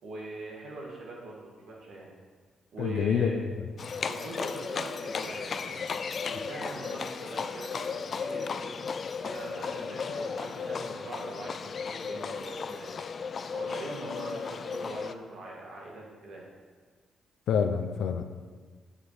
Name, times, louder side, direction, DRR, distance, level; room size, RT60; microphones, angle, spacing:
voice 1, 0.0-2.1 2.7-3.4 4.0-5.8 6.2-8.7 9.2-12.9 13.3-16.4, right 2 dB, 70° right, -3 dB, 2.2 m, -42 dB
voice 2, 2.8-3.4 17.5-18.3, left 7 dB, 70° left, 7 dB, 0.6 m, -27 dB
Livestock farm animals working animals, 3.8-15.1, left 5 dB, 40° left, 0.3 m, -35 dB
8.3 x 5.6 x 5.0 m, 1.5 s
cardioid pair, 135°, 0 cm